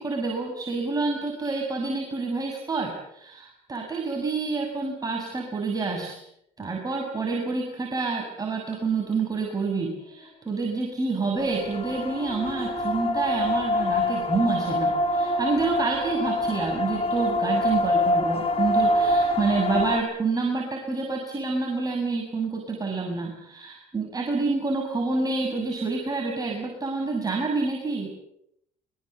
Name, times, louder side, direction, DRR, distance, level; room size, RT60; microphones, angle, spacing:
voice 1, 0.0-6.2 6.6-28.1, right 3 dB, 25° right, 0 dB, 7.0 m, -28 dB
sound 1, 11.4-20.0, left 1 dB, 40° left, 5.2 m, -25 dB
25.0 x 22.5 x 8.1 m, 0.76 s
supercardioid pair, 80°, 15 cm